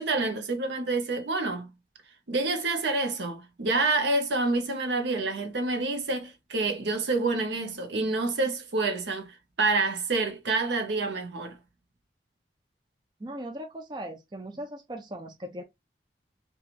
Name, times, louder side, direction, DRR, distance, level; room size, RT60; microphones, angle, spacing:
voice 1, 0.0-1.7 2.3-11.6, right 3 dB, 75° right, 0.7 m, -28 dB
voice 2, 13.2-15.6, right 1 dB, 25° right, 0.4 m, -38 dB
2.9 x 2.3 x 2.4 m
head